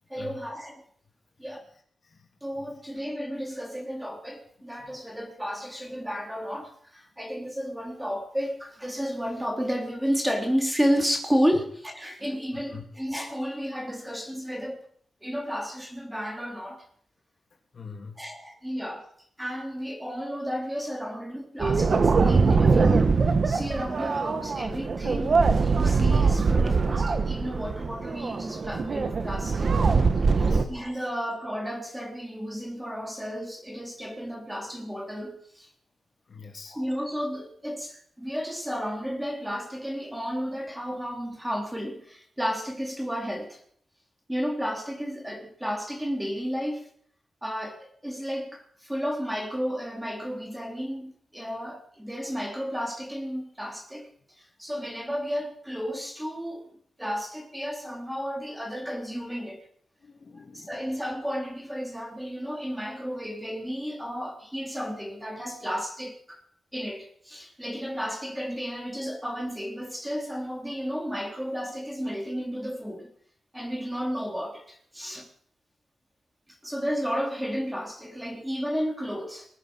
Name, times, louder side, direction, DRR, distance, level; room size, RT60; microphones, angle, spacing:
voice 1, 0.1-0.7 1.4-1.6 2.4-14.8 15.2-16.8 18.2-19.1 19.4-29.8 30.3-35.7 36.7-43.6 44.3-46.9 47.4-54.1 54.4-56.7 57.0-59.6 60.5-66.4 66.7-73.1 73.5-75.3 76.6-79.5, equal, 5° right, 3.6 m, -32 dB
voice 2, 12.5-12.8 17.7-18.2 30.3-30.7 30.9-31.1 36.3-36.8 60.0-60.8, left 5 dB, 55° left, 3.0 m, -44 dB
sound 1, 21.6-30.6, right 4 dB, 55° right, 1.5 m, -23 dB
20.5 x 9.3 x 6.3 m
wide cardioid pair, 95°, 0 cm